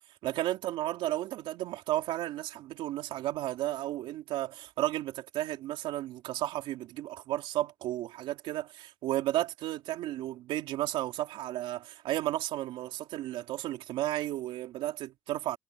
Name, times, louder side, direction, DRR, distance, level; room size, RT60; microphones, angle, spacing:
voice 1, 0.2-15.6, right 14 dB, 70° right, 3.6 m, -33 dB
cardioid pair, 165°, 9 cm